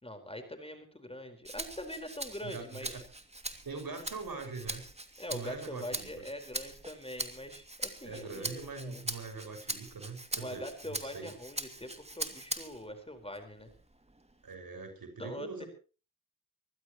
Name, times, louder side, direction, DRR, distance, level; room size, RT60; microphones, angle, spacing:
voice 1, 0.0-3.0 5.2-9.1 10.3-13.7 15.2-15.7, left 1 dB, 15° left, 6 dB, 4.7 m, -43 dB
Rattle (instrument), 1.4-12.9 13.3-14.5, right 2 dB, 15° right, 2.6 m, -42 dB
voice 2, 2.4-3.0 3.6-4.8 5.3-6.1 8.0-11.3 14.4-15.7, right 4 dB, 65° right, 5 dB, 6.1 m, -42 dB
23.5 x 15.5 x 3.1 m, 0.35 s
cardioid pair, 45°, 38 cm